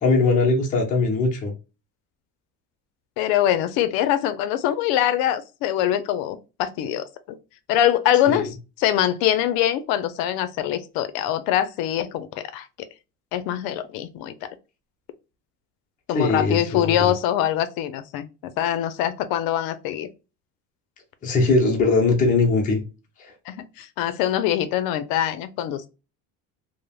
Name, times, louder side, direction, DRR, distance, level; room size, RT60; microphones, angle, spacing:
voice 1, 0.0-1.5 8.3-8.5 16.1-17.1 21.2-22.8 23.2-23.3, left 3 dB, 20° left, 0.6 m, -20 dB
voice 2, 3.2-7.1 7.7-12.7 13.3-14.3 16.1-20.1 23.5-25.9, left 11 dB, 75° left, 0.6 m, -23 dB
3.2 x 2.1 x 2.2 m
cardioid pair, 155°, 36 cm